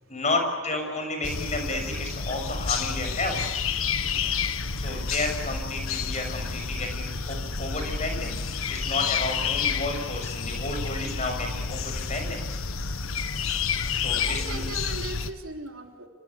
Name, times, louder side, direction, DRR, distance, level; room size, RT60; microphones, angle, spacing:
voice 1, 0.1-3.4 4.8-12.4 13.9-14.6, left 2 dB, 30° left, 4 dB, 6.4 m, -31 dB
sound 1, 1.2-15.3, left 5 dB, 75° left, 1.4 m, -30 dB
voice 2, 14.1-16.1, right 2 dB, 70° right, 2 dB, 3.5 m, -39 dB
28.5 x 24.0 x 7.0 m, 1.4 s
head